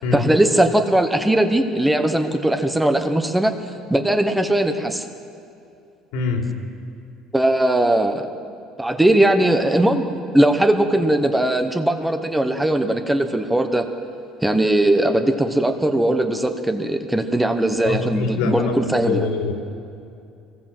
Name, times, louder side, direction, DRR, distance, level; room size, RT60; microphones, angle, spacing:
voice 1, 0.1-3.5 3.9-5.1 7.3-8.3 8.8-13.9 14.4-19.3, right 1 dB, 5° right, 7 dB, 1.1 m, -19 dB
voice 2, 6.1-6.5 17.8-19.5, left 5 dB, 85° left, 2 dB, 3.9 m, -24 dB
24.0 x 19.5 x 7.9 m, 2.6 s
cardioid pair, 155°, 0 cm